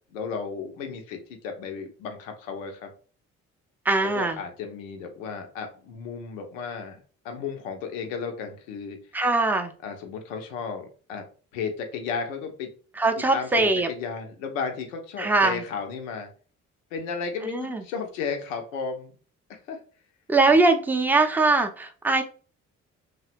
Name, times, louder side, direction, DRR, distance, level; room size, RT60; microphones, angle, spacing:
voice 1, 0.1-2.9 4.0-9.0 9.8-11.2 11.5-12.7 13.2-16.3 16.9-19.1 19.7-19.8, left 5 dB, 85° left, 5 dB, 0.6 m, -34 dB
voice 2, 3.9-4.4 9.1-9.7 13.0-13.9 15.2-15.6 17.4-17.8 20.3-22.2, right 3 dB, 5° right, 5 dB, 0.4 m, -21 dB
2.7 x 2.1 x 2.4 m, 0.39 s
hypercardioid pair, 45°, 38 cm